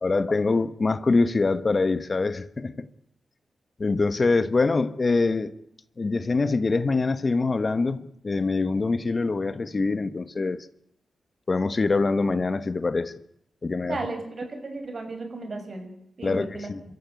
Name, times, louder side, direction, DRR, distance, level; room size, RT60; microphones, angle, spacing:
voice 1, 0.0-2.9 3.8-5.5 6.0-10.7 11.5-13.1 13.6-14.0 16.2-16.8, left 3 dB, 45° left, 1.2 m, -24 dB
voice 2, 13.9-16.7, right 3 dB, 55° right, 5.8 m, -35 dB
26.0 x 14.0 x 9.4 m
supercardioid pair, 45°, 0 cm